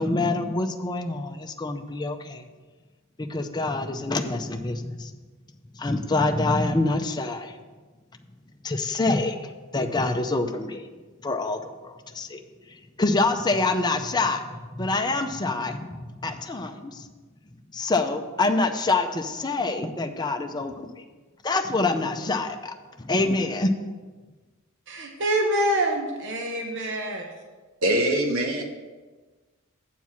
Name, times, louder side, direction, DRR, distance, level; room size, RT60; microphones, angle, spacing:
voice 1, 0.0-2.4 3.2-5.1 5.8-7.6 8.6-10.8 11.2-12.4 12.7-17.1 17.7-21.0 21.4-23.7, left 2 dB, 20° left, 5 dB, 0.6 m, -26 dB
voice 2, 24.9-27.2, right 1 dB, 60° right, 2 dB, 0.9 m, -26 dB
voice 3, 27.8-28.6, right 1 dB, 85° right, 2 dB, 1.3 m, -23 dB
8.1 x 4.6 x 7.2 m, 1.3 s
head